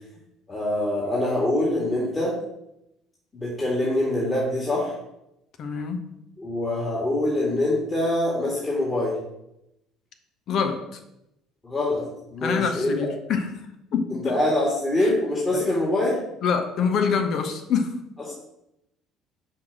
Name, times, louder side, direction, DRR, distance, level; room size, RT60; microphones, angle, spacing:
voice 1, 0.5-2.3 3.3-5.0 6.4-9.2 11.6-12.0 12.3-13.1 14.2-16.2 18.3-18.4, left 1 dB, 25° left, -4 dB, 2.3 m, -24 dB
voice 2, 5.6-6.0 10.5-11.0 12.4-13.5 13.9-14.4 15.5-15.7 16.4-17.9, left 6 dB, 55° left, 6 dB, 1.1 m, -25 dB
5.8 x 5.1 x 6.1 m, 0.85 s
hypercardioid pair, 60°, 0 cm